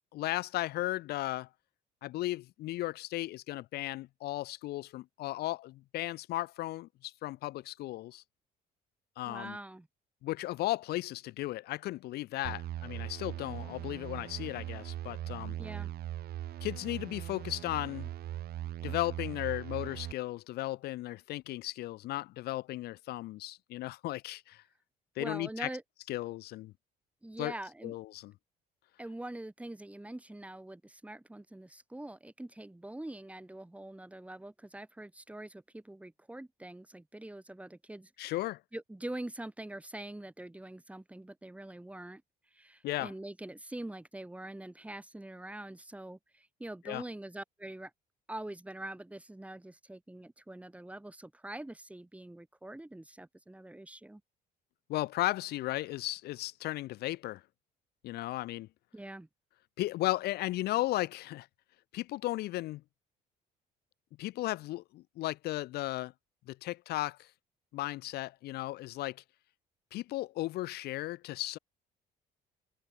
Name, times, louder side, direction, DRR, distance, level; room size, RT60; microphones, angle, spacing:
voice 1, 0.1-1.5 2.0-8.2 9.2-9.6 10.2-15.6 16.6-18.1 18.8-24.6 25.2-25.7 26.1-26.7 27.4-27.5 27.8-28.3 38.2-38.6 42.8-43.1 46.8-47.0 54.9-57.4 58.0-58.7 59.8-61.5 61.9-62.8 64.2-66.1 66.5-67.3 67.7-69.2 69.9-71.6, left 17 dB, 70° left, 0.6 m, -35 dB
voice 2, 9.2-9.9 15.6-15.9 25.2-25.8 27.2-27.9 29.0-38.1 38.7-42.2 42.5-47.9 48.3-54.2 58.9-59.3, right 1 dB, 10° right, 4.8 m, -44 dB
sound 1, 12.4-20.1, right 13 dB, 65° right, 3.3 m, -40 dB
cardioid pair, 110°, 17 cm